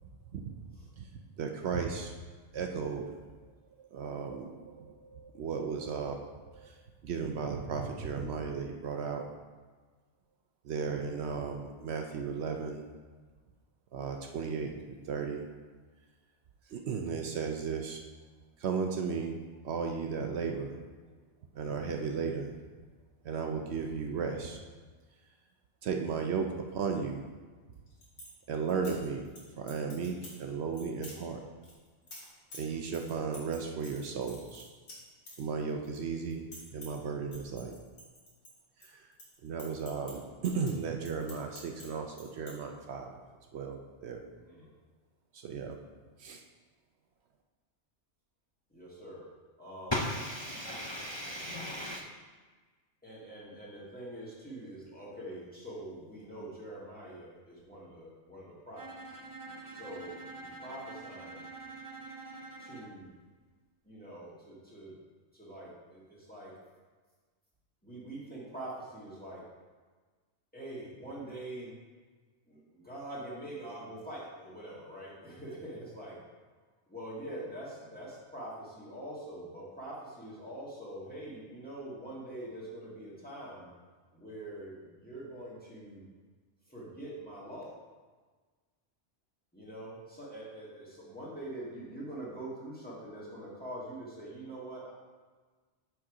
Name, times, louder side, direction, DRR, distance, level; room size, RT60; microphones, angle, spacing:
voice 1, 1.4-2.1 2.5-3.2 3.8-6.2 6.4-6.8 7.0-9.2 10.6-12.9 13.9-15.5 16.7-18.0 18.6-19.4 19.6-20.8 21.5-22.5 23.2-24.6 25.8-26.5 26.7-27.2 28.5-29.3 29.6-31.4 32.5-34.6 35.4-37.7 38.8-39.0 39.4-43.2 43.5-44.2 45.3-45.8 46.2-46.4, right 5 dB, 70° right, 3 dB, 0.9 m, -35 dB
voice 2, 10.7-11.0 44.3-44.7 48.7-49.2 49.6-49.9 53.0-58.8 59.7-61.4 62.6-63.1 63.8-64.9 65.3-66.5 67.8-69.4 70.5-71.7 72.5-76.2 76.9-83.7 84.1-86.0 86.7-87.7 89.5-94.9, right 1 dB, 10° left, -7 dB, 1.6 m, -44 dB
sound 1, 27.7-28.3 28.7-29.4 29.7-30.4 30.7-31.2 31.6-36.0 36.2-37.0 37.3-38.9 39.1-41.9 42.1-42.5, left 1 dB, 80° left, 2.1 m, -49 dB
voice 3, 49.9-52.0, left 1 dB, 35° left, -2 dB, 0.4 m, -36 dB
Bowed string instrument, 58.8-63.0, right 2 dB, 30° right, 0.3 m, -46 dB
6.2 x 4.6 x 4.8 m, 1.4 s
omnidirectional pair, 1.2 m